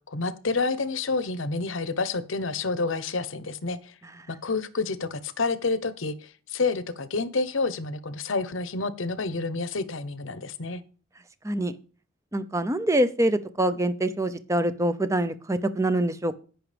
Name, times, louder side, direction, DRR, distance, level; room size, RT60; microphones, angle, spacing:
voice 1, 0.1-3.9 4.4-10.8, left 3 dB, 75° left, 14 dB, 0.9 m, -29 dB
voice 2, 12.3-16.4, right 1 dB, 15° right, 12 dB, 0.7 m, -25 dB
17.0 x 6.0 x 3.4 m, 0.38 s
head